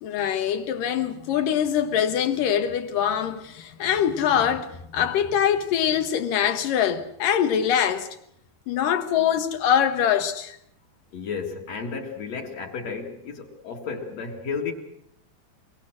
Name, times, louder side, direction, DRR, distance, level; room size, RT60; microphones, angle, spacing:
voice 1, 0.0-8.1 8.7-10.6, left 9 dB, 70° left, 2.7 m, -23 dB
voice 2, 11.1-14.7, left 5 dB, 50° left, 2.9 m, -33 dB
23.5 x 23.0 x 6.3 m
omnidirectional pair, 4.2 m